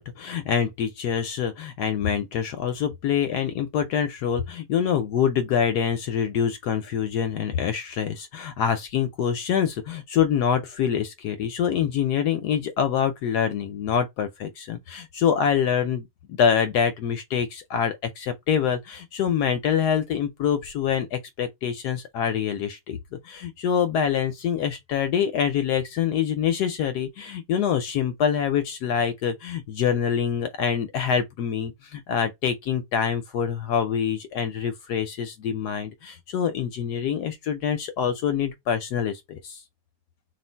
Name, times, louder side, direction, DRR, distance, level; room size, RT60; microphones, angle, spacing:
voice 1, 0.0-23.0 23.2-39.6, left 8 dB, 75° left, 1.1 m, -25 dB
3.2 x 2.5 x 4.3 m
omnidirectional pair, 1.9 m